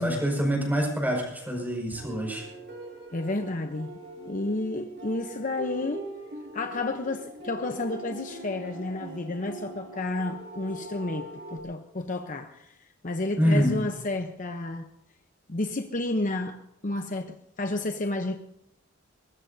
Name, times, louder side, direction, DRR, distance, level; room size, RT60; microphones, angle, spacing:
voice 1, 0.0-2.5 13.4-13.8, equal, 10° right, 0 dB, 5.3 m, -26 dB
sound 1, 1.9-11.6, right 2 dB, 55° right, 3.8 m, -42 dB
voice 2, 3.1-6.1 6.5-12.8 13.0-14.9 15.5-16.6 16.8-18.4, left 2 dB, 40° left, 6 dB, 0.8 m, -31 dB
22.5 x 20.0 x 2.8 m, 0.81 s
head